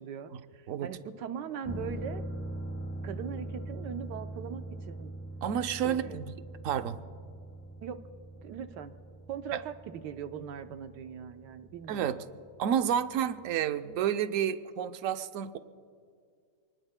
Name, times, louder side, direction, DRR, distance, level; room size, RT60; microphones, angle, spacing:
voice 1, 0.0-2.2 3.0-5.1 5.8-6.2 7.8-8.0 8.4-8.9 9.3-12.1, right 8 dB, 85° right, 8 dB, 1.4 m, -40 dB
sound 1, 1.6-13.2 13.5-13.6, right 1 dB, 10° left, 1.1 m, -42 dB
voice 2, 5.4-6.3 6.6-7.0 9.5-9.6 11.9-12.2 12.6-15.6, right 9 dB, 60° right, 9 dB, 0.9 m, -30 dB
28.0 x 20.5 x 2.2 m, 2.2 s
omnidirectional pair, 1.8 m